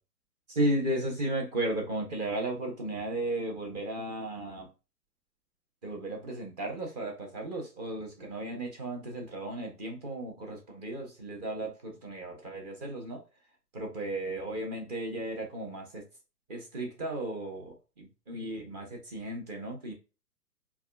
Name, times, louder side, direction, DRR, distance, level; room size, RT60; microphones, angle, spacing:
voice 1, 0.5-4.7 5.8-13.2 13.7-16.0 16.5-19.9, right 1 dB, 25° right, 0.9 m, -34 dB
4.5 x 2.3 x 2.3 m
figure-of-eight pair, 130°, 48 cm